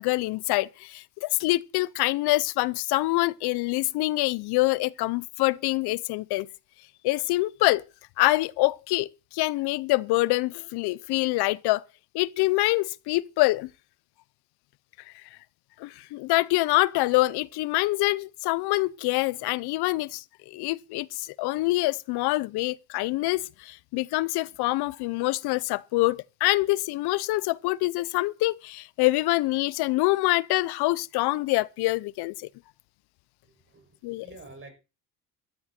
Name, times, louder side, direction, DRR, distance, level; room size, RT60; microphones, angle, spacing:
voice 1, 0.0-6.5 7.0-7.8 8.2-11.8 12.1-13.7 15.8-32.5 34.0-34.3, left 20 dB, 80° left, 0.7 m, -25 dB
voice 2, 33.4-34.7, right 2 dB, 30° right, 6.6 m, -49 dB
13.5 x 13.5 x 4.3 m
cardioid pair, 120°, 38 cm